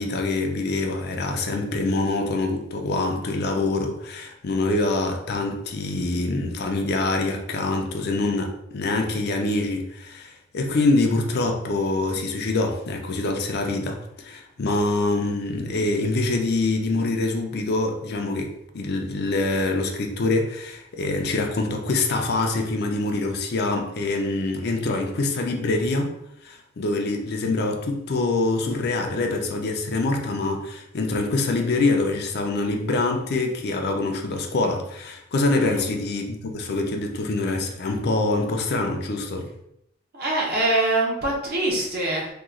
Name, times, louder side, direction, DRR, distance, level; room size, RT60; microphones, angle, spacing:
voice 1, 0.0-26.2 26.4-39.5, left 2 dB, 55° left, 3 dB, 0.5 m, -25 dB
voice 2, 40.1-42.3, right 2 dB, 50° right, -3 dB, 1.0 m, -24 dB
2.9 x 2.3 x 3.7 m, 0.77 s
head